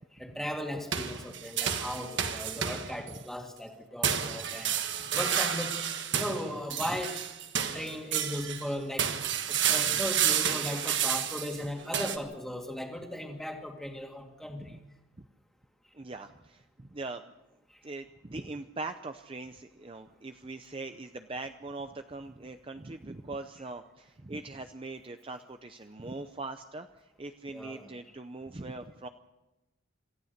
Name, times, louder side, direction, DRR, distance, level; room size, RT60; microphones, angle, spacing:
voice 1, 0.2-4.7 5.1-5.8 6.1-7.2 7.7-9.1 9.5-14.8 27.5-27.9, left 1 dB, ahead, 2 dB, 2.2 m, -37 dB
sound 1, 0.9-3.2 4.0-8.7 9.0-12.2, right 8 dB, 60° right, 1.6 m, -30 dB
voice 2, 15.9-17.3 17.8-29.1, right 2 dB, 25° right, 7 dB, 0.6 m, -41 dB
27.0 x 14.5 x 6.6 m, 1.0 s
head